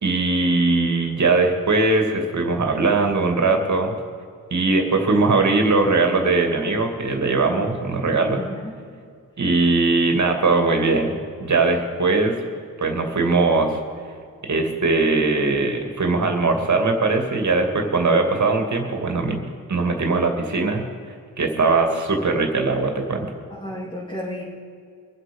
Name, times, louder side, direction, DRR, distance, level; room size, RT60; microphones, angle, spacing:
voice 1, 0.0-3.9 4.5-8.4 9.4-12.4 12.8-13.8 14.4-19.4 19.7-20.8 21.4-23.3, right 3 dB, 55° right, 3 dB, 2.4 m, -20 dB
voice 2, 8.4-8.8 23.5-24.4, left 1 dB, 15° left, -6 dB, 3.1 m, -32 dB
23.5 x 8.1 x 5.4 m, 2.2 s
cardioid pair, 80°, 34 cm